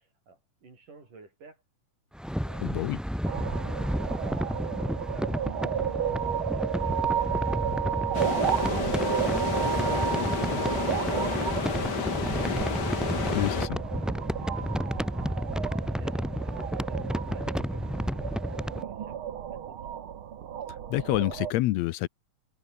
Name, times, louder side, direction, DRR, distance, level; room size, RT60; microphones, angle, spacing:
voice 1, 0.3-1.6 2.5-2.8 3.2-7.7 13.9-15.3 15.6-19.8, right 4 dB, 90° right, 8.9 m, -55 dB
sound 1, 2.1-18.8, equal, ahead, 1.4 m, -32 dB
voice 2, 2.6-3.0 13.3-13.8 20.9-22.1, left 17 dB, 75° left, 1.6 m, -27 dB
sound 2, 3.2-21.5, right 9 dB, 50° right, 1.8 m, -33 dB
sound 3, 8.1-13.7, left 5 dB, 35° left, 2.7 m, -31 dB
omnidirectional pair, 3.6 m